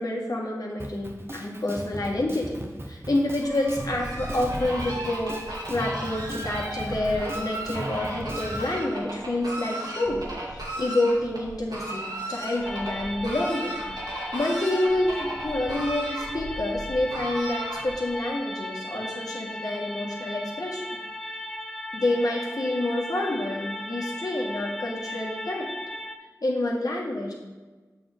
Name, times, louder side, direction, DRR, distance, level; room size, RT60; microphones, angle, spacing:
voice 1, 0.0-10.2 10.5-20.8 21.9-25.7 26.4-27.3, left 1 dB, 70° left, -2 dB, 1.7 m, -28 dB
Drum kit, 0.8-8.7, right 1 dB, 35° right, 0.9 m, -38 dB
Fowl, 3.4-18.1, right 1 dB, 85° right, 1.9 m, -35 dB
sound 1, 12.6-26.2, left 1 dB, 5° left, 0.6 m, -36 dB
7.6 x 6.8 x 3.6 m, 1.3 s
wide cardioid pair, 45°, 7 cm